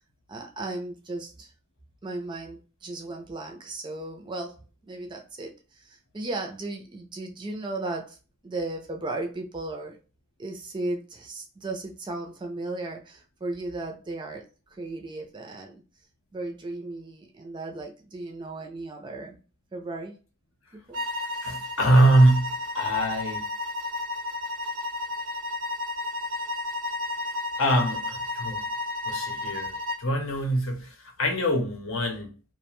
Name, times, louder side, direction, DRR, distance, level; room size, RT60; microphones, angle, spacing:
voice 1, 0.3-1.5 2.0-8.2 8.4-10.0 10.4-15.8 16.3-19.4 19.7-20.2 20.9-21.0, right 2 dB, 20° right, 0.4 m, -36 dB
sound 1, 20.9-30.1, left 2 dB, 90° right, 0.7 m, -32 dB
voice 2, 21.4-23.4 27.6-28.6 29.1-29.7 30.0-32.3, right 1 dB, 70° left, 0.7 m, -23 dB
2.4 x 2.1 x 2.9 m
head